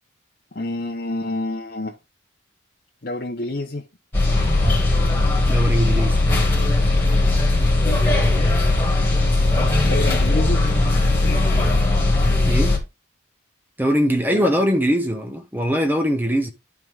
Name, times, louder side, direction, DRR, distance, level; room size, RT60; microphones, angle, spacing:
voice 1, 0.5-2.0 3.0-3.8 9.8-10.6 14.3-14.5, left 1 dB, 45° left, 0.8 m, -28 dB
sound 1, 4.1-12.8, left 2 dB, 10° left, 1.9 m, -18 dB
voice 2, 5.5-6.2 12.5-12.8 13.8-16.5, equal, 10° right, 0.9 m, -21 dB
11.0 x 4.7 x 3.5 m
head